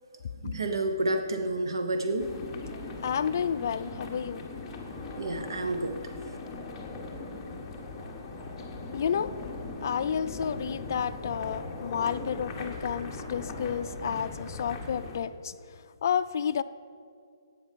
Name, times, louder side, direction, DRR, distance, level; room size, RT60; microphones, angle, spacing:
voice 1, 0.4-2.3 5.2-6.0, right 2 dB, 80° right, 6 dB, 0.9 m, -29 dB
sound 1, 2.2-15.2, left 3 dB, 10° left, 1.2 m, -39 dB
voice 2, 2.8-4.7 8.9-9.4 9.8-15.6 16.0-16.6, left 8 dB, 50° left, 10 dB, 0.4 m, -31 dB
10.5 x 8.7 x 5.8 m, 2.4 s
hypercardioid pair, 165°, 2 cm